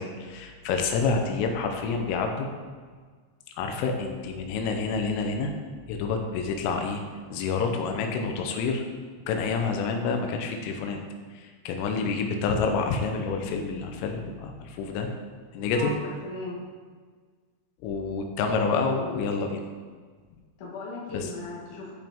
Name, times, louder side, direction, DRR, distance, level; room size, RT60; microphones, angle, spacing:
voice 1, 0.0-2.5 3.6-5.5 5.9-7.0 7.3-8.8 9.3-11.0 11.4-15.1 15.5-15.9 17.8-19.6 21.1-21.3, left 4 dB, 90° left, 3 dB, 3.4 m, -28 dB
voice 2, 16.2-16.6 20.6-21.9, left 2 dB, 55° left, -4 dB, 2.5 m, -37 dB
13.5 x 5.2 x 3.6 m, 1.5 s
omnidirectional pair, 5.7 m